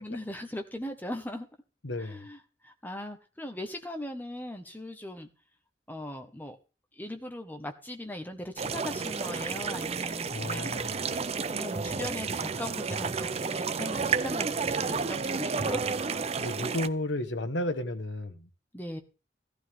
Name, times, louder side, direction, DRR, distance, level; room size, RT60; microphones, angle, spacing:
voice 1, 0.0-1.5 2.0-5.3 5.9-6.6 7.0-10.7 11.5-15.8 18.7-19.0, left 1 dB, 10° left, 1.5 m, -39 dB
voice 2, 1.8-2.2 10.3-11.0 16.4-18.4, left 1 dB, 85° left, 1.3 m, -33 dB
sound 1, 8.6-16.9, right 5 dB, 35° right, 0.6 m, -31 dB
15.0 x 12.0 x 3.7 m
head